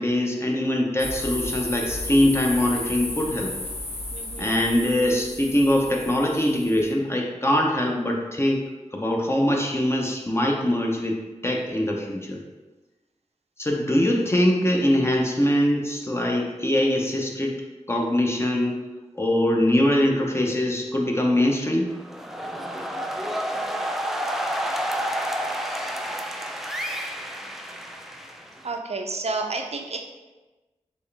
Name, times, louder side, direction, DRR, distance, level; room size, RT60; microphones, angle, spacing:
voice 1, 0.0-3.5 4.4-8.6 8.9-11.2 11.4-12.4 13.6-17.6 17.9-18.8 19.2-21.9, left 1 dB, 20° left, 0 dB, 0.8 m, -22 dB
sound 1, 1.0-6.9, left 2 dB, 50° left, 0.9 m, -33 dB
voice 2, 4.1-4.6 28.6-30.0, right 3 dB, 55° right, 3 dB, 0.5 m, -30 dB
sound 2, 21.9-28.8, equal, ahead, 0.4 m, -30 dB
4.4 x 3.1 x 3.3 m, 1.2 s
wide cardioid pair, 60°, 13 cm